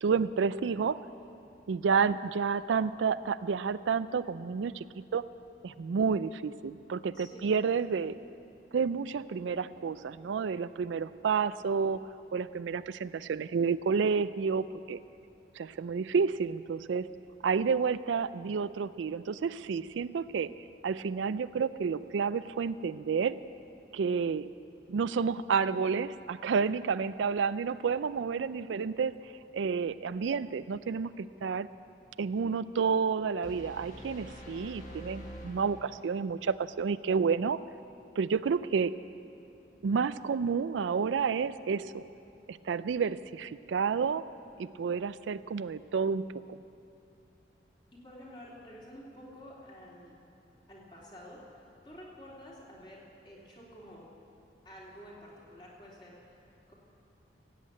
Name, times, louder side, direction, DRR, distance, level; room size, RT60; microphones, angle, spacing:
voice 1, 0.0-1.0 1.7-4.8 5.1-5.2 5.6-8.2 8.7-12.0 12.3-15.0 15.6-17.1 17.4-20.5 20.8-23.4 23.9-24.5 24.9-31.7 32.2-37.6 38.2-39.0 39.8-42.0 42.5-44.2 44.6-46.6, right 5 dB, 90° right, 15 dB, 0.4 m, -30 dB
voice 2, 7.1-8.1 47.9-50.2 50.7-54.1 54.6-56.7, equal, 25° left, -5 dB, 3.0 m, -50 dB
sound 1, 33.4-36.4, equal, 45° left, 1.7 m, -46 dB
16.5 x 8.4 x 8.6 m, 2.7 s
head